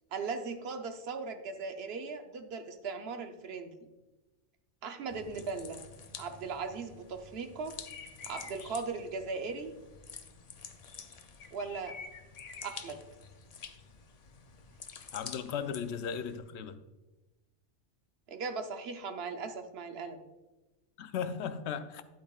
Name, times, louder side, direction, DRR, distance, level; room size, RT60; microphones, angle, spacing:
voice 1, 0.1-3.9 4.8-5.8 6.2-7.7 8.3-9.7 11.5-12.0 12.6-13.0 18.3-20.2, right 4 dB, 60° right, 7 dB, 1.0 m, -38 dB
sound 1, 5.1-16.4, left 6 dB, 50° left, 0.4 m, -50 dB
sound 2, 7.8-9.1 10.3-10.5 10.8-13.0 13.2-13.8, left 4 dB, 85° left, 1.3 m, -48 dB
voice 2, 15.1-16.8 21.0-22.0, left 7 dB, 70° left, 11 dB, 0.8 m, -36 dB
10.5 x 8.6 x 2.3 m, 1.1 s
omnidirectional pair, 1.2 m